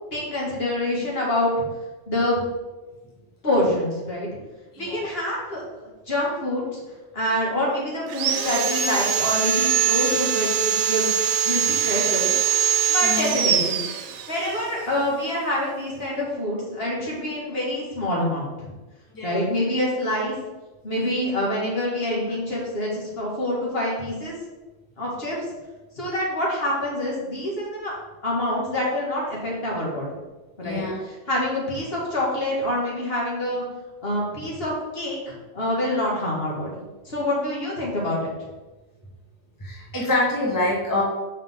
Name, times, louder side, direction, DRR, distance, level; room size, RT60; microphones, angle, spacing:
voice 1, 0.1-1.5 2.1-2.4 3.4-4.3 4.8-6.8 7.1-11.1 11.4-12.3 12.9-13.8 14.3-18.7 19.2-20.4 20.8-24.3 25.0-25.4 26.0-27.9 28.2-30.1 30.6-30.8 31.3-33.6 34.0-38.2, left 1 dB, 55° left, -4 dB, 2.0 m, -26 dB
voice 2, 4.7-5.1 13.0-13.3 19.1-19.4 30.6-31.0 39.6-41.0, left 2 dB, 20° left, -5 dB, 1.2 m, -26 dB
Sawing, 8.1-14.6, right 8 dB, 85° right, 0.9 m, -23 dB
5.7 x 5.4 x 3.6 m, 1.1 s
omnidirectional pair, 1.2 m